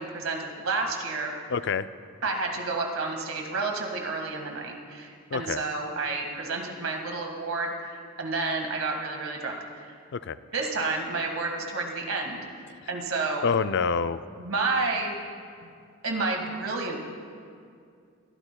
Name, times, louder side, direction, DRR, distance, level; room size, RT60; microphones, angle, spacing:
voice 1, 0.0-1.3 2.2-9.9 10.5-12.4 12.9-13.5 14.4-15.2 15.6-15.7 16.0-17.0, right 3 dB, 75° right, 2 dB, 1.8 m, -30 dB
voice 2, 1.5-1.9 5.3-5.6 10.1-10.4 13.4-14.2, left 6 dB, 55° left, 13 dB, 0.4 m, -26 dB
21.0 x 16.0 x 2.3 m, 2.3 s
head